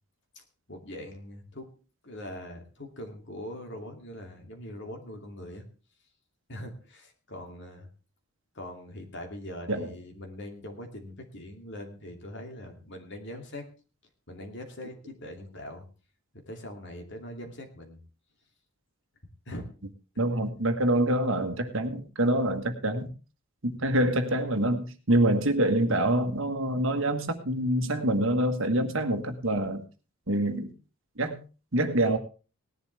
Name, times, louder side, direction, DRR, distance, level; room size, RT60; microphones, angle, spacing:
voice 1, 0.7-1.7 2.0-5.6 6.5-7.9 8.5-13.7 14.3-15.8 16.5-18.0 19.5-19.6 23.7-24.0, left 1 dB, 50° left, 4 dB, 2.6 m, -42 dB
voice 2, 20.2-23.1 23.6-29.8 30.3-30.7 31.2-31.4 31.7-32.2, right 1 dB, 60° right, 8 dB, 1.5 m, -26 dB
18.5 x 11.0 x 3.4 m, 0.34 s
head